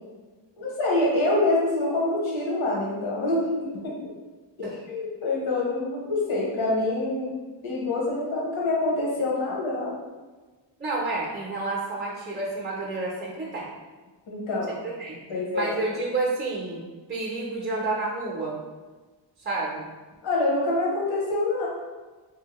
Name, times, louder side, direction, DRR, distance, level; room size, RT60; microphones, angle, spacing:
voice 1, 0.6-3.9 4.6-7.3 7.6-9.9 14.3-14.8 15.3-15.7 20.2-21.7, left 2 dB, 80° left, -4 dB, 0.9 m, -26 dB
voice 2, 10.8-13.7 15.0-15.2 15.5-16.8 17.1-18.6 19.4-19.9, right 3 dB, 25° right, -4 dB, 0.5 m, -29 dB
3.0 x 2.7 x 2.9 m, 1.3 s
wide cardioid pair, 130°, 46 cm